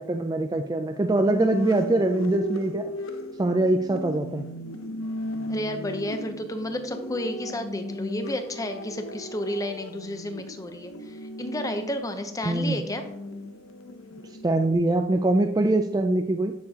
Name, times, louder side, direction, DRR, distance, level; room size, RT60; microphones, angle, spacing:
voice 1, 0.0-2.9 3.4-4.5 12.4-12.8 14.4-16.5, right 2 dB, 20° right, 5 dB, 0.3 m, -23 dB
sound 1, 1.0-14.7, left 1 dB, 75° left, 0.8 m, -37 dB
voice 2, 5.5-13.1, left 1 dB, 15° left, 7 dB, 0.7 m, -32 dB
10.5 x 6.8 x 2.8 m, 0.83 s
head